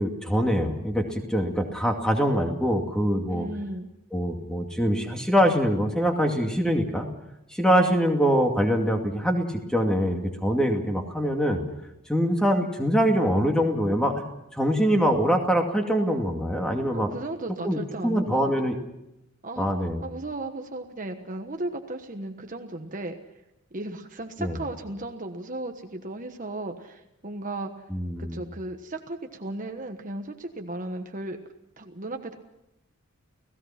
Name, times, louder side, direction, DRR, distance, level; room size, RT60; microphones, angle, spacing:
voice 1, 0.0-3.5 4.1-7.1 7.5-11.6 12.1-14.2 14.5-17.1 17.6-18.7 19.6-20.0 24.4-24.6 27.9-28.4, equal, 5° left, 2 dB, 2.3 m, -24 dB
voice 2, 3.3-3.9 16.9-18.5 19.4-19.7 20.0-23.1 23.7-27.8 28.2-31.4 31.8-32.4, right 2 dB, 35° right, 5 dB, 1.3 m, -35 dB
30.0 x 17.0 x 5.9 m, 0.87 s
head